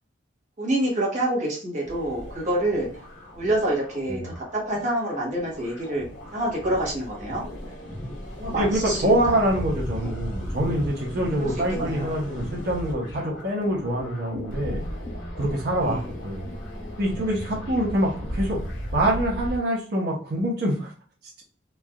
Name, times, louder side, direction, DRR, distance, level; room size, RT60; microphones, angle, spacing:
voice 1, 0.6-2.9 3.3-6.0 6.3-7.4 8.4-9.4 10.0-10.1 11.4-12.1 15.8-16.1, right 1 dB, 40° right, -3 dB, 1.0 m, -27 dB
sound 1, 1.9-19.6, equal, 90° left, 1.1 m, -35 dB
voice 2, 8.6-14.8 15.4-16.0 16.2-16.5 17.0-18.6 18.9-20.9, right 1 dB, 60° right, -2 dB, 0.7 m, -25 dB
3.1 x 2.4 x 2.3 m, 0.40 s
head